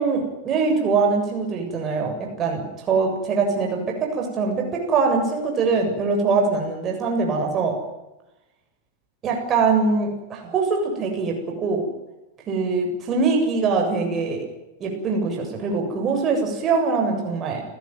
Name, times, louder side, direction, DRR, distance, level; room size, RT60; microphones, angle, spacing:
voice 1, 0.0-7.8 9.2-11.4 11.6-11.8 12.5-14.5 14.8-17.6, right 4 dB, 30° right, 2 dB, 7.6 m, -23 dB
30.0 x 17.5 x 9.5 m, 0.96 s
figure-of-eight pair, 90°, 0 cm